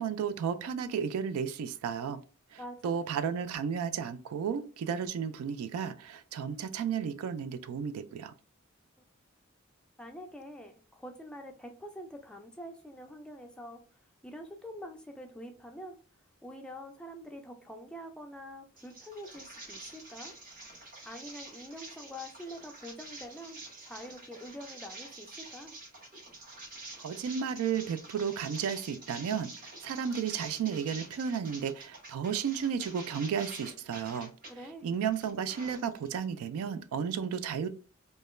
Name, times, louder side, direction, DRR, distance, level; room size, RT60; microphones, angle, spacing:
voice 1, 0.0-2.2 2.5-8.3 27.0-34.3 34.8-37.7, right 7 dB, 85° right, 0.3 m, -33 dB
voice 2, 2.6-3.0 10.0-13.8 14.2-16.0 16.4-20.4 21.0-25.8 34.5-34.9, equal, 5° left, 0.3 m, -45 dB
sound 1, 18.8-34.5 34.9-36.2, right 2 dB, 40° right, 0.8 m, -48 dB
2.2 x 2.1 x 3.0 m
head